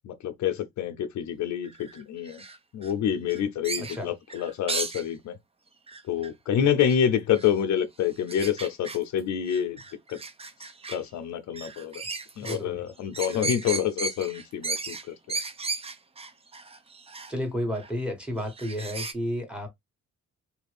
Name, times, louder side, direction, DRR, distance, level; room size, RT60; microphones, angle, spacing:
voice 1, 0.0-2.4 2.7-5.4 6.0-9.8 10.1-10.2 10.9-12.0 12.4-15.4, left 9 dB, 70° left, 0.6 m, -27 dB
sound 1, 1.6-2.9 3.3-5.0 5.9-6.3 6.8-7.0 7.3-7.5 8.3-9.2 9.4-11.0 11.5-12.6 12.9-17.3 17.7-17.9 18.4-19.1, right 4 dB, 20° right, 0.5 m, -35 dB
voice 2, 3.8-4.1 12.4-12.8 17.3-19.7, equal, 5° right, 1.3 m, -32 dB
2.8 x 2.5 x 3.2 m
cardioid pair, 90°, 30 cm